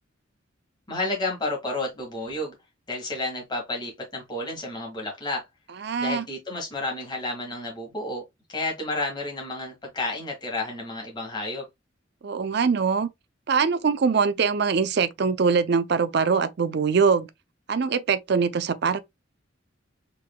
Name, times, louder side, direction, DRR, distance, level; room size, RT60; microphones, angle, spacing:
voice 1, 0.9-2.5 2.9-5.4 6.0-8.2 8.5-11.6, left 2 dB, 20° left, 1.8 m, -31 dB
voice 2, 5.8-6.2 12.2-13.1 13.5-17.3 17.7-19.0, right 5 dB, 55° right, 0.5 m, -23 dB
4.7 x 3.7 x 2.2 m
head